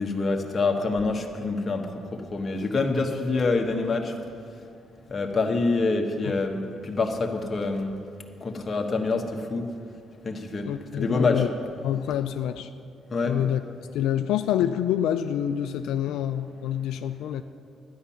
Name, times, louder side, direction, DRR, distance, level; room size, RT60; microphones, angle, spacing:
voice 1, 0.0-4.1 5.1-8.0 8.4-9.7 10.2-10.7 11.0-11.5 13.1-13.4, left 3 dB, 35° left, 2 dB, 1.4 m, -26 dB
voice 2, 10.7-11.5 11.8-12.7 13.2-13.6 13.9-17.4, left 10 dB, 90° left, 8 dB, 0.4 m, -27 dB
12.0 x 10.5 x 5.8 m, 2.3 s
cardioid pair, 90°, 0 cm